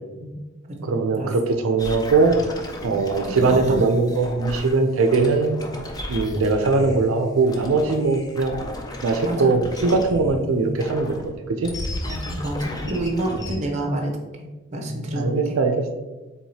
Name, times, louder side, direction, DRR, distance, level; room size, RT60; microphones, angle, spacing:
voice 1, 0.8-2.3 2.8-5.7 6.1-8.5 9.0-11.2 11.5-11.7 15.2-16.0, right 3 dB, 85° right, 5 dB, 0.4 m, -21 dB
sound 1, 1.8-7.1 7.4-10.4 10.8-13.6, left 1 dB, 20° left, 0.4 m, -34 dB
voice 2, 2.9-3.8 7.8-8.1 9.2-9.6 10.5-10.8 12.0-15.6, right 1 dB, 35° right, 1 dB, 0.7 m, -29 dB
4.6 x 3.4 x 2.8 m, 1.2 s
head